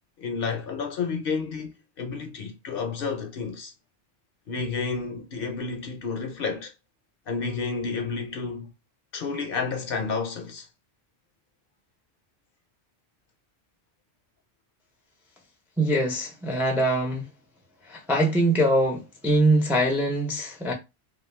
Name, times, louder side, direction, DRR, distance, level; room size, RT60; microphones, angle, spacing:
voice 1, 0.2-3.7 4.5-6.7 7.3-8.7 9.1-10.7, left 5 dB, 65° left, 0.7 m, -30 dB
voice 2, 15.8-17.3 17.8-20.7, right 1 dB, ahead, 0.4 m, -23 dB
2.3 x 2.1 x 3.1 m
omnidirectional pair, 1.1 m